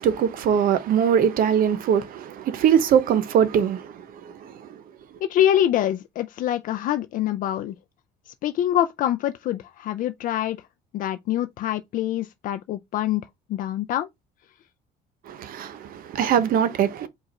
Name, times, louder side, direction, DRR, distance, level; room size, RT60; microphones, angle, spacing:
voice 1, 0.0-3.9 15.3-17.1, right 8 dB, 55° right, 0.8 m, -21 dB
voice 2, 5.3-7.7 8.4-10.6 10.9-14.1, left 11 dB, 55° left, 0.4 m, -25 dB
4.9 x 2.4 x 4.1 m
cardioid pair, 130°, 17 cm